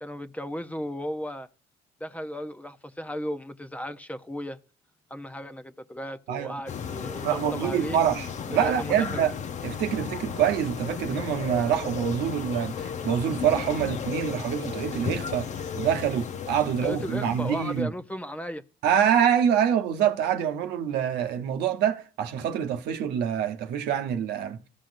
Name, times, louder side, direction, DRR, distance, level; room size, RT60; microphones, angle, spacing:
voice 1, 0.0-1.5 2.0-4.6 5.1-8.0 8.5-9.3 16.8-18.6, equal, 10° left, 0.7 m, -35 dB
sound 1, 6.7-17.8, left 7 dB, 45° left, 0.7 m, -35 dB
voice 2, 7.2-9.3 9.6-15.5 15.7-17.9 18.8-24.6, right 9 dB, 80° right, 0.9 m, -26 dB
14.5 x 6.2 x 2.6 m
cardioid pair, 110°, 17 cm